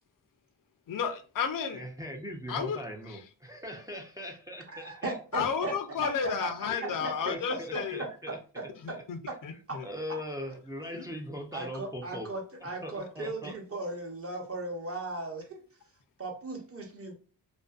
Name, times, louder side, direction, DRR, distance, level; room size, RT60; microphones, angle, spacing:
voice 1, 0.9-1.8 2.5-3.2 5.3-8.0 8.8-9.9 10.9-11.1, left 7 dB, 55° left, 8 dB, 0.5 m, -33 dB
voice 2, 1.7-5.7 6.7-6.9 7.3-8.4 8.9-9.0 9.8-12.3 12.6-13.5, equal, 10° right, 1 dB, 0.4 m, -40 dB
voice 3, 4.7-5.7 6.0-6.5 6.8-9.0 9.3-9.4 9.7-9.8 10.1-10.2 11.5-15.7 16.2-17.1, right 2 dB, 35° right, 1 dB, 0.8 m, -37 dB
2.5 x 2.1 x 2.3 m, 0.37 s
cardioid pair, 75°, 41 cm